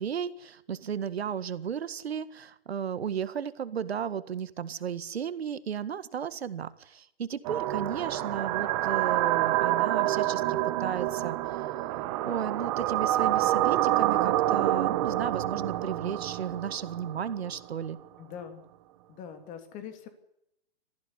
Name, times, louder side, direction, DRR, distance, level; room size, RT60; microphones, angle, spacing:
voice 1, 0.0-11.8 12.2-18.0, right 8 dB, 80° right, 13 dB, 1.8 m, -34 dB
sound 1, 7.4-17.6, right 14 dB, 35° right, 1.5 m, -27 dB
voice 2, 18.2-18.6 19.1-20.1, left 8 dB, 25° left, 8 dB, 3.1 m, -42 dB
21.0 x 15.0 x 9.9 m, 0.81 s
hypercardioid pair, 145°, 31 cm